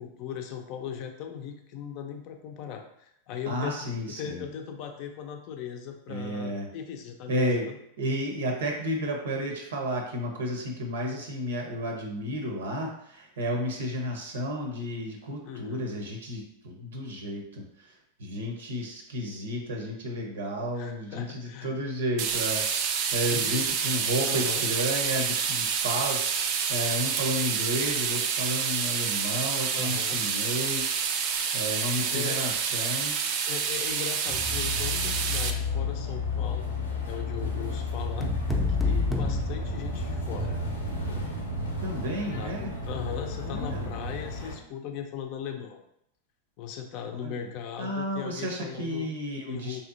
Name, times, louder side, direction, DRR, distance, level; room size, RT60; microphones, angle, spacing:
voice 1, 0.0-3.9 4.1-7.8 15.4-15.9 20.8-21.7 23.3-23.7 24.3-24.6 29.7-30.2 32.1-32.4 33.5-36.6 36.9-38.3 38.7-40.6 42.4-45.8 46.6-49.1 49.5-49.8, left 8 dB, 50° left, 4 dB, 0.5 m, -38 dB
voice 2, 3.5-4.4 6.1-6.7 7.3-7.7 8.0-17.9 18.2-31.0 31.5-33.2 41.8-42.7 43.4-43.9 47.2-47.4 47.8-49.8, equal, 75° right, 1 dB, 0.7 m, -32 dB
sound 1, 22.2-35.5, right 6 dB, 50° right, 0.4 m, -28 dB
sound 2, 34.3-44.5, left 2 dB, 90° left, 0.7 m, -32 dB
sound 3, 38.2-40.5, left 3 dB, ahead, 0.5 m, -28 dB
3.3 x 2.7 x 2.5 m, 0.73 s
figure-of-eight pair, 95°, 0 cm